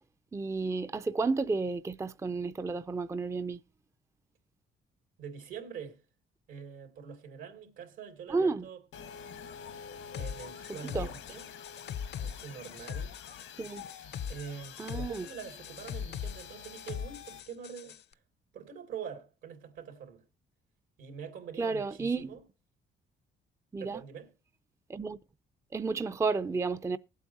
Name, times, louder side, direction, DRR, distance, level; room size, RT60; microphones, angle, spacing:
voice 1, 0.3-3.6 8.3-8.7 10.9-11.1 13.6-13.8 14.8-15.3 21.6-22.3 23.7-24.0 24.9-25.2 25.7-27.0, right 4 dB, 15° right, 0.5 m, -31 dB
voice 2, 5.2-6.0 6.5-8.8 10.1-11.4 12.2-13.1 14.3-18.0 18.5-20.2 21.0-22.4 23.8-24.3, right 7 dB, 85° right, 3.0 m, -44 dB
Radio Glitch, 8.9-17.4, left 7 dB, 90° left, 1.6 m, -48 dB
sound 1, 10.1-18.0, left 8 dB, 60° left, 0.6 m, -41 dB
20.0 x 8.3 x 2.9 m
cardioid pair, 90°, 20 cm